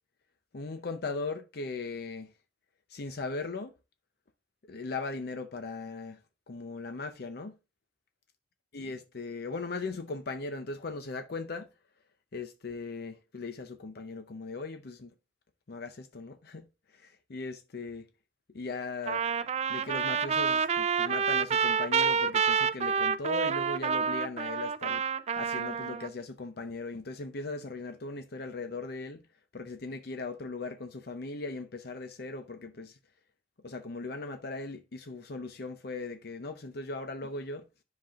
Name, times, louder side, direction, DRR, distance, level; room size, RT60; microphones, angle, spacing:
voice 1, 0.5-2.3 2.9-3.7 4.7-6.2 6.5-7.5 8.7-11.7 12.3-15.1 15.7-16.7 16.9-18.1 18.5-19.2 19.7-25.0 25.4-29.2 29.5-33.0 33.6-37.7, left 3 dB, 60° left, 0.6 m, -38 dB
Trumpet, 19.1-26.1, right 6 dB, 40° right, 0.4 m, -28 dB
10.0 x 5.9 x 2.4 m
head